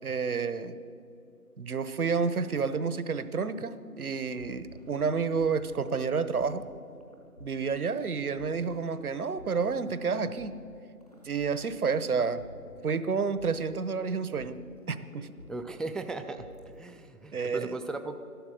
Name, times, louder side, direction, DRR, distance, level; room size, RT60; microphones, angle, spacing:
voice 1, 0.0-0.8 1.6-6.6 7.4-10.5 11.2-12.4 12.8-14.6 14.9-15.3 17.3-17.8, right 5 dB, 65° right, 13 dB, 0.9 m, -30 dB
sound 1, 4.3-17.1, left 1 dB, 25° left, 0.9 m, -53 dB
voice 2, 15.5-16.5 16.8-18.2, right 3 dB, ahead, 7 dB, 0.3 m, -37 dB
13.0 x 11.5 x 6.4 m, 2.5 s
figure-of-eight pair, 165°, 47 cm